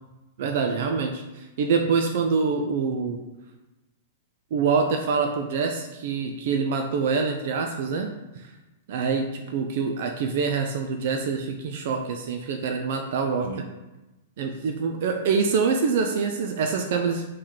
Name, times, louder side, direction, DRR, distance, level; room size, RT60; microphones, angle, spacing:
voice 1, 0.4-3.2 4.5-8.1 8.4-8.5 8.9-13.6 14.4-17.3, right 5 dB, 60° right, 4 dB, 0.4 m, -25 dB
3.7 x 3.3 x 4.2 m, 1.1 s
hypercardioid pair, 115°, 0 cm